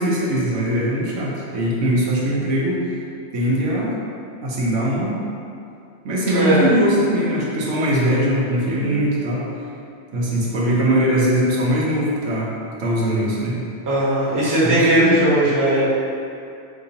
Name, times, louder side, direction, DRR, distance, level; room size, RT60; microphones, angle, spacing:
voice 1, 0.0-2.8 3.3-4.0 4.4-5.2 6.0-9.4 10.1-12.5 12.8-13.6 14.6-15.2, equal, 85° right, -5 dB, 1.1 m, -21 dB
voice 2, 6.3-6.7 13.9-15.9, right 1 dB, 20° right, -9 dB, 0.7 m, -18 dB
3.9 x 2.9 x 2.7 m, 2.5 s
omnidirectional pair, 1.2 m